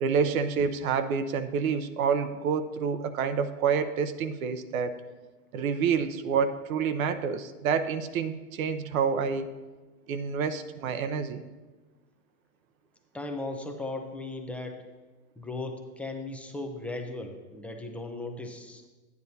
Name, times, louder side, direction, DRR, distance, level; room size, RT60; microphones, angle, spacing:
voice 1, 0.0-4.9 5.5-9.5 10.1-11.4, right 6 dB, 70° right, 10 dB, 0.7 m, -28 dB
voice 2, 13.1-14.9 15.4-18.9, left 2 dB, 5° left, 3 dB, 0.5 m, -37 dB
10.5 x 9.4 x 2.7 m, 1.3 s
hypercardioid pair, 120°, 44 cm